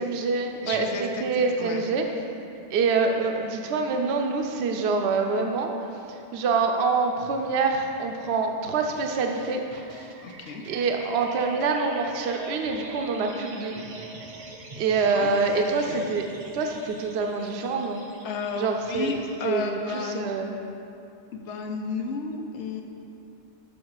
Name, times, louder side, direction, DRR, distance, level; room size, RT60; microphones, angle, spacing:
voice 1, 0.0-2.0 2.7-5.7 6.1-9.6 10.7-13.8 14.8-18.1 18.6-20.5, right 4 dB, 70° right, 3 dB, 0.8 m, -26 dB
voice 2, 0.6-1.8 10.2-10.6 15.1-15.3 15.5-16.1 18.2-20.3 21.3-22.8, left 4 dB, 80° left, 4 dB, 1.0 m, -33 dB
sound 1, 8.8-19.5, right 2 dB, 40° right, 0.5 m, -44 dB
6.5 x 6.1 x 4.7 m, 2.6 s
omnidirectional pair, 1.2 m